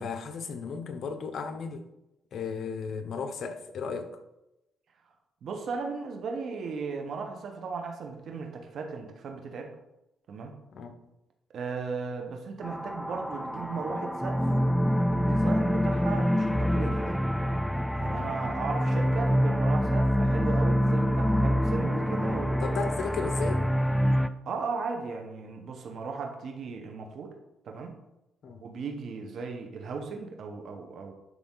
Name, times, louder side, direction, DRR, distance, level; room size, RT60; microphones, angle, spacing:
voice 1, 0.0-1.8 2.3-4.1 10.7-10.9 18.1-18.3 22.6-23.6 28.4-28.6, left 5 dB, 60° left, 8 dB, 0.9 m, -34 dB
voice 2, 5.4-9.7 10.3-10.5 11.5-14.5 15.1-17.2 17.9-22.9 24.4-27.3 27.6-28.0 28.6-31.1, right 4 dB, 65° right, 3 dB, 1.4 m, -36 dB
sound 1, 12.6-24.3, equal, 5° left, 0.4 m, -26 dB
11.0 x 3.9 x 4.0 m, 0.92 s
cardioid pair, 90°, 0 cm